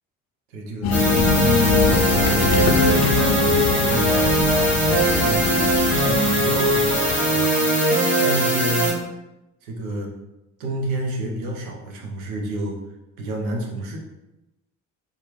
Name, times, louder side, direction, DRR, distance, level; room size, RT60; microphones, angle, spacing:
voice 1, 0.5-4.1 4.7-7.8 8.1-9.1 9.6-10.2 10.6-12.8 13.2-14.0, right 1 dB, 80° right, 1 dB, 0.7 m, -30 dB
sound 1, 0.8-7.4, left 6 dB, 40° left, 0.5 m, -24 dB
sound 2, 0.9-8.9, right 1 dB, 5° left, 1.1 m, -20 dB
2.8 x 2.1 x 3.3 m, 0.95 s
figure-of-eight pair, 50°, 41 cm